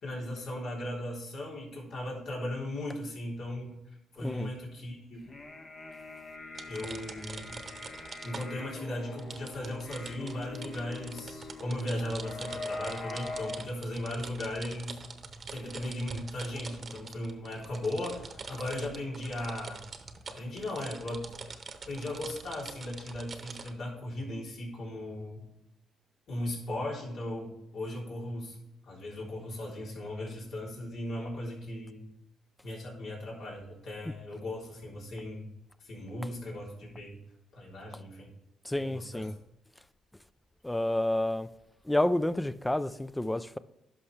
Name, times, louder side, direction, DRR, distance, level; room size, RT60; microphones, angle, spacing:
voice 1, 0.0-3.8 4.1-5.2 6.7-7.6 8.2-15.0 15.5-19.8 20.3-21.3 21.9-25.5 26.3-28.6 28.8-32.1 32.6-35.4 35.8-37.2 37.5-38.3 38.8-39.3, left 1 dB, 70° left, 3.5 m, -37 dB
voice 2, 4.2-4.5 34.0-34.1 38.6-39.4 40.6-41.5 41.8-43.6, left 1 dB, 10° left, 0.5 m, -29 dB
sound 1, 5.2-13.7, left 3 dB, 45° left, 1.4 m, -43 dB
sound 2, 6.5-8.7 9.2-23.7, right 4 dB, 40° right, 1.0 m, -45 dB
11.0 x 5.9 x 3.3 m
cardioid pair, 90°, 0 cm